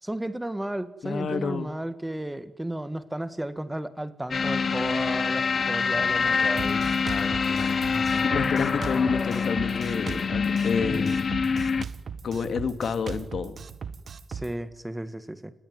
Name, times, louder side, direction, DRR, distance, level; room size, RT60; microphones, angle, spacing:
voice 1, 0.0-7.0 7.9-8.2 14.3-15.5, right 1 dB, 10° right, 12 dB, 1.8 m, -34 dB
voice 2, 1.0-1.7 7.0-7.8 8.2-11.1 12.2-13.6, left 5 dB, 65° left, 11 dB, 2.7 m, -30 dB
sound 1, 4.3-11.9, left 5 dB, 45° left, 1.0 m, -25 dB
Drum kit, 6.6-14.5, right 6 dB, 50° right, 1.7 m, -38 dB
29.5 x 20.5 x 9.6 m, 0.84 s
wide cardioid pair, 135°, 0 cm